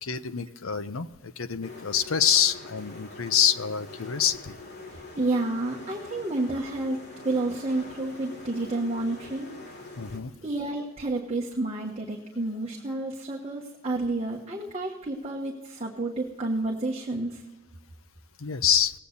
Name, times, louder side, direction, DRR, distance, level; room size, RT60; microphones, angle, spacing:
voice 1, 0.0-4.5 10.0-10.3 18.4-18.9, left 8 dB, 90° left, 11 dB, 0.7 m, -26 dB
sound 1, 1.6-10.2, left 2 dB, 55° left, 2.5 m, -44 dB
voice 2, 4.9-7.0 7.2-9.9 10.4-17.4, right 2 dB, 30° right, -2 dB, 1.3 m, -30 dB
18.5 x 8.5 x 4.0 m, 1.1 s
head